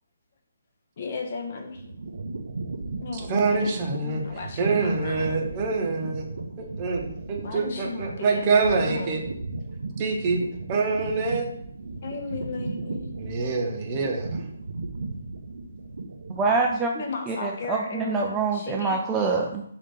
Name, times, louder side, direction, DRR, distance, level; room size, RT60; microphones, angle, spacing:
voice 1, 1.0-1.8 3.0-5.4 7.4-9.3 12.0-13.1 13.4-13.6 16.9-19.0, left 4 dB, 50° left, 3 dB, 0.7 m, -36 dB
sound 1, 1.4-16.8, right 3 dB, 75° right, 0.5 m, -36 dB
voice 2, 3.3-4.2 4.6-6.3 6.6-9.2 10.0-10.4 10.7-11.5 13.2-14.4, right 4 dB, 30° right, 1 dB, 0.7 m, -25 dB
voice 3, 16.4-16.9 17.3-19.6, right 4 dB, 15° right, 0 dB, 0.3 m, -25 dB
3.5 x 2.5 x 4.0 m, 0.71 s
hypercardioid pair, 150°, 0 cm